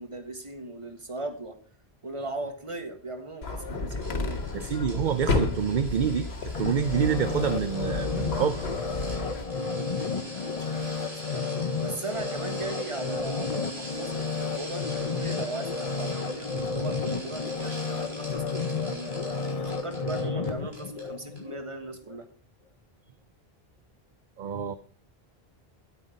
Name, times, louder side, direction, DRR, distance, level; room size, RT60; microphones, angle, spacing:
voice 1, 0.0-1.6 2.0-4.5 4.9-5.0 10.4-19.2 19.6-22.3, right 2 dB, 30° right, 6 dB, 1.6 m, -38 dB
sound 1, 3.4-9.4, left 3 dB, 90° left, 1.6 m, -32 dB
sound 2, 4.0-20.5 20.7-21.0 21.4-21.5, equal, 85° right, 5.0 m, -44 dB
voice 2, 4.5-8.6 9.1-9.3 24.4-24.7, right 7 dB, 55° right, 12 dB, 0.7 m, -27 dB
sound 3, 6.5-21.6 22.0-22.1, left 4 dB, 40° left, 0.8 m, -32 dB
9.8 x 9.3 x 5.1 m, 0.42 s
omnidirectional pair, 1.0 m